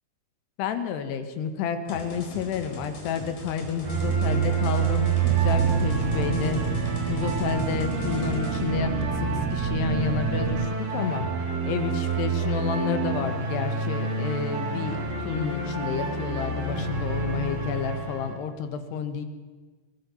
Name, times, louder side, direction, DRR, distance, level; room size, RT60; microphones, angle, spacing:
voice 1, 0.6-6.6 7.1-19.3, left 6 dB, 85° left, 8 dB, 3.6 m, -30 dB
sound 1, 1.9-8.6, left 2 dB, 55° left, 5.8 m, -41 dB
sound 2, 3.8-18.3, right 4 dB, 45° right, 4.0 m, -27 dB
sound 3, 5.2-10.7, right 11 dB, 75° right, 2.0 m, -31 dB
24.0 x 19.0 x 7.1 m, 1.4 s
omnidirectional pair, 4.7 m